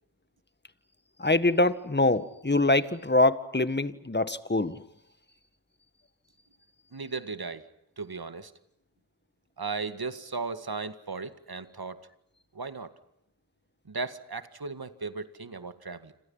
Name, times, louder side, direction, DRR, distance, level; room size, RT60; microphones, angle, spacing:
voice 1, 1.2-4.8, left 2 dB, 25° left, 13 dB, 1.8 m, -24 dB
voice 2, 6.9-7.7 8.0-8.5 9.6-12.0 12.5-12.9 13.9-16.1, right 4 dB, 60° right, 10 dB, 2.1 m, -36 dB
29.0 x 27.0 x 5.8 m, 0.82 s
cardioid pair, 45°, 42 cm